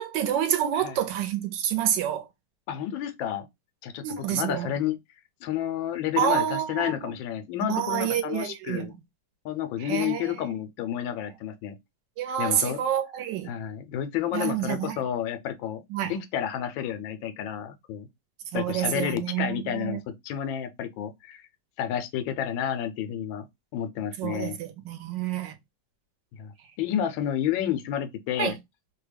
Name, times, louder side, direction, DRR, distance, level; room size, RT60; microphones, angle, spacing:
voice 1, 0.0-2.3 4.0-4.7 6.2-7.1 7.7-8.9 9.8-10.3 12.2-13.5 14.3-15.0 15.9-16.2 18.5-20.0 24.2-25.5 28.4-28.5, right 10 dB, 75° right, 1.3 m, -28 dB
voice 2, 2.7-3.5 3.8-5.0 5.4-8.9 9.4-11.7 12.4-12.8 13.5-18.1 18.5-21.4 21.8-23.5 23.7-24.6 26.4-28.6, left 10 dB, 90° left, 1.3 m, -30 dB
3.3 x 2.2 x 3.2 m
omnidirectional pair, 2.0 m